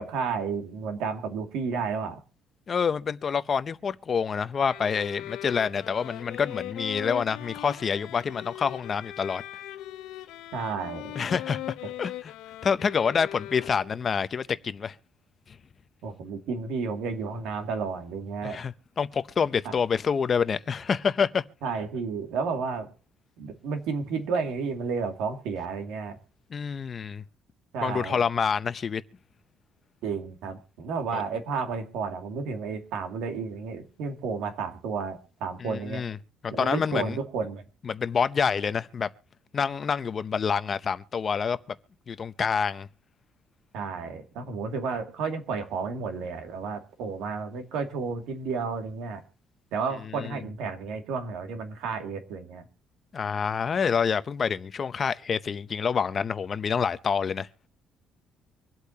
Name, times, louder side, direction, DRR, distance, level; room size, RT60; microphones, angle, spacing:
voice 1, 0.0-2.2 10.5-11.1 16.0-18.6 19.6-19.7 21.6-22.9 23.4-26.2 27.7-28.2 30.0-36.0 36.5-37.6 43.7-49.2 49.7-52.7, right 5 dB, 85° right, 2.3 m, -32 dB
voice 2, 2.7-9.4 11.2-11.6 12.0-12.3 12.6-15.0 15.5-15.6 18.4-21.4 26.5-27.2 27.8-29.0 31.1-31.2 35.6-36.2 36.4-37.2 37.8-39.1 39.5-41.6 42.1-42.9 50.1-50.4 53.1-57.5, left 6 dB, 30° left, 0.6 m, -27 dB
sound 1, 4.6-14.1, left 14 dB, 85° left, 0.7 m, -40 dB
25.0 x 8.3 x 2.8 m
cardioid pair, 155°, 0 cm